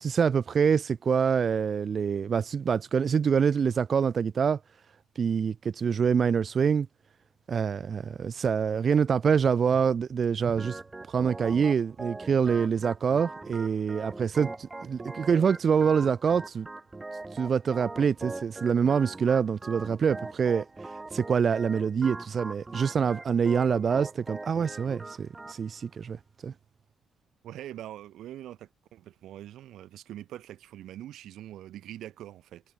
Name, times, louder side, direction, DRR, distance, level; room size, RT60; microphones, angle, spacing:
voice 1, 0.0-4.6 5.2-6.9 7.5-10.8 11.1-16.7 17.3-20.6 21.1-26.2 26.4-26.5, right 6 dB, 45° right, 1.0 m, -25 dB
Organ, 10.6-25.6, right 2 dB, 20° right, 2.1 m, -42 dB
voice 2, 27.4-32.7, right 13 dB, 80° right, 7.9 m, -43 dB
cardioid pair, 90°, 0 cm